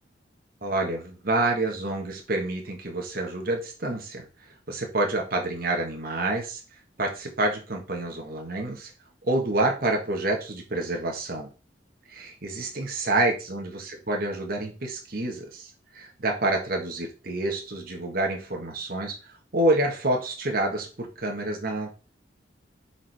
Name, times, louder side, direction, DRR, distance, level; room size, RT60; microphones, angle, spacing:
voice 1, 0.6-4.3 4.7-6.6 7.0-8.9 9.2-11.5 12.1-21.9, right 2 dB, 55° right, 1 dB, 1.5 m, -28 dB
7.0 x 4.6 x 3.5 m, 0.33 s
head